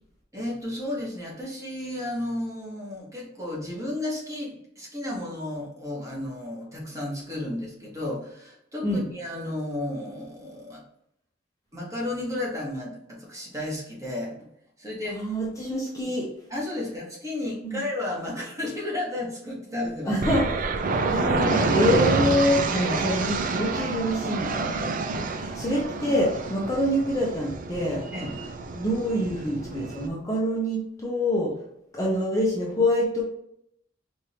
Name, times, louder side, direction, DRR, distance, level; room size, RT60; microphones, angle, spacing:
voice 1, 0.3-10.8 11.7-14.4 14.8-15.2 15.8-15.9 16.5-20.2 22.7-23.1 26.0-26.2 28.1-28.3, left 1 dB, 15° right, -4 dB, 1.3 m, -33 dB
voice 2, 15.1-16.3 17.6-17.8 20.1-20.8 21.0-28.0 28.7-31.6 31.9-33.2, equal, 15° left, -4 dB, 0.8 m, -26 dB
sound 1, 20.2-30.1, right 3 dB, 45° right, 0.4 m, -28 dB
4.8 x 2.7 x 2.9 m, 0.75 s
head